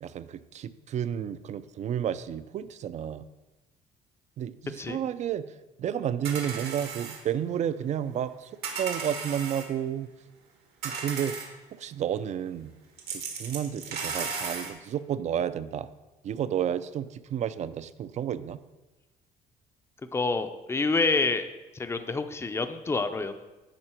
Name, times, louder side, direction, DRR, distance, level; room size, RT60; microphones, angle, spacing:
voice 1, 0.0-3.2 4.4-5.4 5.8-8.5 8.8-10.1 10.8-11.4 11.8-12.7 13.1-15.9 16.2-18.6, right 9 dB, 45° right, 14 dB, 0.4 m, -31 dB
sound 1, 6.2-7.2 8.6-9.7 10.8-11.5 13.0-14.7, right 5 dB, 75° right, 1.4 m, -35 dB
voice 2, 20.1-21.4 21.7-23.5, left 3 dB, 15° left, 9 dB, 0.5 m, -27 dB
10.0 x 3.8 x 4.4 m, 1.1 s
cardioid pair, 110°, 17 cm